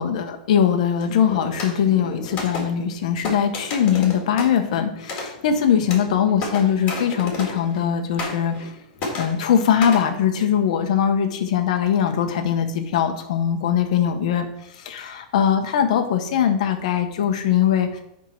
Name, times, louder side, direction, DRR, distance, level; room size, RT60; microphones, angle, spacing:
voice 1, 0.0-8.7 9.2-14.5 14.7-18.0, left 8 dB, 55° left, 5 dB, 0.9 m, -21 dB
sound 1, 1.0-7.9 8.2-8.7 9.0-10.1, left 3 dB, 25° left, 1.8 m, -32 dB
10.0 x 3.6 x 4.4 m, 0.78 s
supercardioid pair, 170°, 4 cm